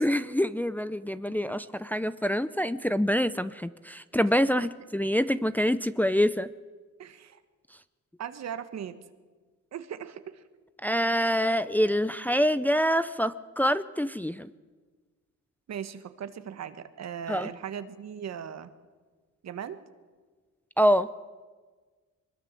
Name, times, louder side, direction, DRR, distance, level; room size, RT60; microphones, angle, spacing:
voice 1, 0.0-6.5 10.8-14.5 17.3-17.5 20.8-21.1, equal, 5° left, 13 dB, 0.7 m, -26 dB
voice 2, 7.0-7.4 8.2-9.0 9.7-10.4 15.7-18.7 19.4-19.8, right 8 dB, 60° right, 11 dB, 1.6 m, -38 dB
23.0 x 21.0 x 7.7 m, 1.4 s
cardioid pair, 90°, 30 cm